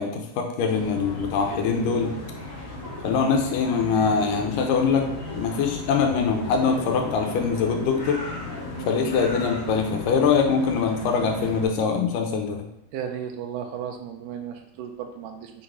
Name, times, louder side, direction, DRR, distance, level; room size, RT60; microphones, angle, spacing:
voice 1, 0.0-2.1 3.0-5.1 5.3-8.2 8.9-12.7, left 5 dB, 90° left, 3 dB, 2.4 m, -23 dB
sound 1, 0.7-11.6, left 2 dB, 40° left, 1.2 m, -35 dB
voice 2, 12.9-15.5, right 8 dB, 85° right, 3 dB, 2.3 m, -34 dB
5.7 x 4.2 x 4.6 m, 0.76 s
omnidirectional pair, 3.7 m